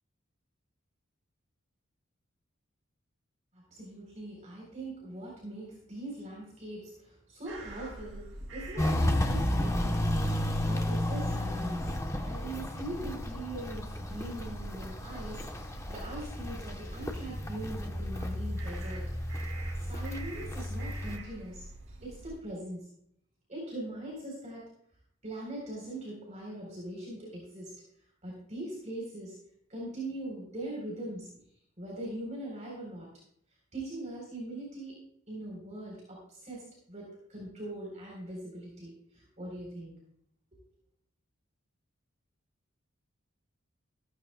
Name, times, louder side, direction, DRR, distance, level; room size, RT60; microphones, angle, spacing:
voice 1, 3.5-10.1 10.6-11.9 12.2-19.1 19.8-21.6 22.0-22.9 23.5-24.6 25.2-27.7 28.2-29.4 29.7-31.3 31.8-33.1 33.7-39.9 40.5-40.6, right 1 dB, 35° right, -3 dB, 3.9 m, -41 dB
sound 1, 7.5-22.4, right 1 dB, 70° right, 2.7 m, -46 dB
Walk footsteps, 8.8-21.2, left 1 dB, 15° left, 1.0 m, -33 dB
14.5 x 14.5 x 2.3 m, 0.67 s
head